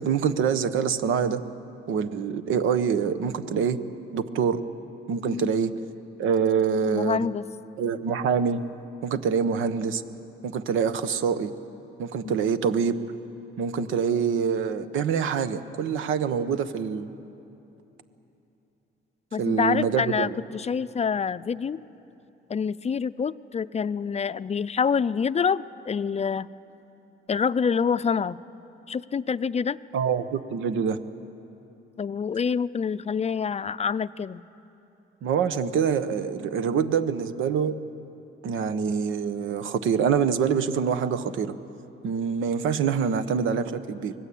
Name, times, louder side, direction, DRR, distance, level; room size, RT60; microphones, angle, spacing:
voice 1, 0.0-1.4 1.9-3.8 4.1-4.6 5.1-5.7 6.2-7.2 7.8-8.6 9.0-10.0 10.4-11.5 12.0-12.9 13.6-17.1 19.4-20.3 29.9-31.0 35.2-37.7 38.4-41.5 42.0-44.1, right 7 dB, 85° right, 11 dB, 1.1 m, -25 dB
voice 2, 6.9-7.5 12.2-12.5 19.3-21.8 22.5-26.5 27.3-28.4 28.9-29.8 32.0-34.4, left 6 dB, 35° left, 15 dB, 0.5 m, -26 dB
25.0 x 19.5 x 8.6 m, 2.9 s
cardioid pair, 90°, 20 cm